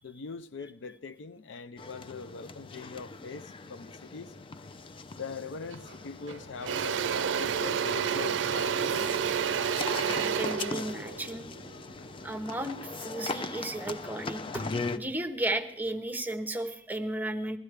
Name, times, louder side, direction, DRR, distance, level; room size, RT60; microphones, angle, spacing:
voice 1, 0.0-4.3 5.1-9.1, left 5 dB, 85° left, 0.5 m, -42 dB
sound 1, 1.8-15.0, left 3 dB, 30° left, 0.4 m, -40 dB
Engine / Drill, 5.7-5.9 6.3-12.4, right 7 dB, 90° right, 0.5 m, -30 dB
voice 2, 10.2-11.5 12.2-14.6 14.9-17.6, right 1 dB, 10° right, 0.7 m, -34 dB
16.5 x 12.5 x 3.3 m
head